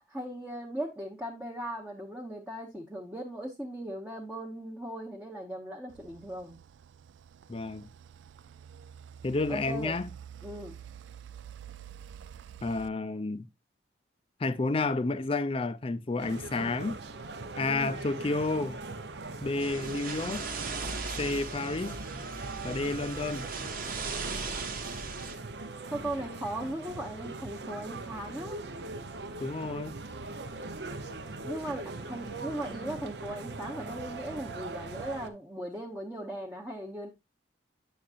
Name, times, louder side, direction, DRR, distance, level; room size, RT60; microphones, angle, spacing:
voice 1, 0.0-6.6 9.5-9.9 10.4-10.8 17.6-18.0 25.9-28.6 31.4-37.1, right 1 dB, 10° right, 0.8 m, -38 dB
sound 1, 5.9-12.9, right 8 dB, 85° right, 0.3 m, -48 dB
voice 2, 7.5-7.9 9.2-10.1 12.6-13.5 14.4-17.0 17.6-18.8 19.4-20.5 21.2-22.0 22.6-23.5 29.4-30.0, left 3 dB, 30° left, 0.4 m, -31 dB
sound 2, 16.2-35.3, right 3 dB, 65° right, 0.7 m, -41 dB
sound 3, 19.6-25.3, right 4 dB, 50° right, 1.1 m, -38 dB
8.5 x 6.4 x 2.5 m
head